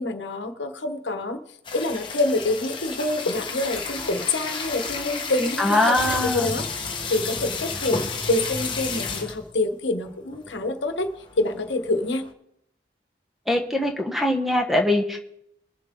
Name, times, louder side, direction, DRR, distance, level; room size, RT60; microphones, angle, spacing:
voice 1, 0.0-1.4 1.7-11.1 11.4-12.2, left 2 dB, 80° left, 8 dB, 1.1 m, -26 dB
sound 1, 1.6-9.5 10.0-10.1 10.3-10.6 11.0-12.3, left 4 dB, 25° left, 1.1 m, -31 dB
voice 2, 5.6-6.6 13.5-15.2, left 1 dB, ahead, 3 dB, 1.1 m, -22 dB
22.0 x 7.4 x 3.7 m, 0.77 s
head